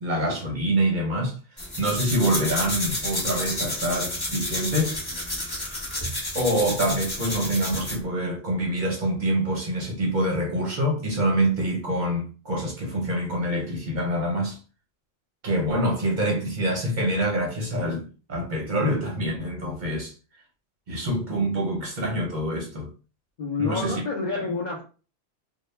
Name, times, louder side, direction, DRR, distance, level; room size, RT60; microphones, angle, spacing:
voice 1, 0.0-1.3 1.8-5.0 6.3-14.6 15.4-20.1 20.9-22.9 23.6-24.0, right 1 dB, 50° right, 0.7 m, -26 dB
sound 1, 1.6-8.0, left 1 dB, 25° left, 0.8 m, -30 dB
voice 2, 23.4-24.8, left 4 dB, 50° left, 0.6 m, -28 dB
2.1 x 2.0 x 3.1 m
omnidirectional pair, 1.2 m